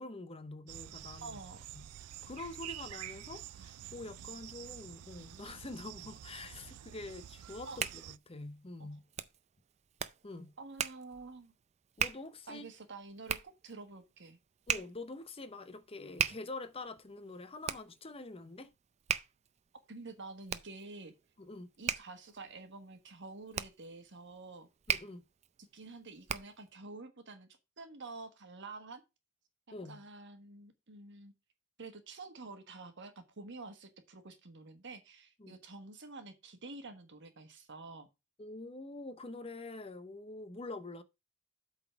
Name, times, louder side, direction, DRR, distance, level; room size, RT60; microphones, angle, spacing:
voice 1, 0.0-1.4 1.7-1.8 2.2-9.0 10.2-10.5 12.0-12.7 14.7-18.7 21.4-21.7 24.9-25.2 29.7-30.0 35.4-35.6 38.4-41.0, left 2 dB, 25° left, 0.8 m, -46 dB
sound 1, 0.7-8.2, right 12 dB, 90° right, 0.4 m, -48 dB
voice 2, 1.2-1.6 7.6-7.8 8.8-8.9 10.6-11.5 12.5-14.4 19.9-21.1 21.8-24.7 25.7-27.5 27.8-29.0 29.9-31.3 31.8-38.1, right 3 dB, 55° right, 1.4 m, -48 dB
Hands, 7.4-26.7, right 8 dB, 30° right, 0.4 m, -40 dB
8.1 x 4.0 x 5.8 m
head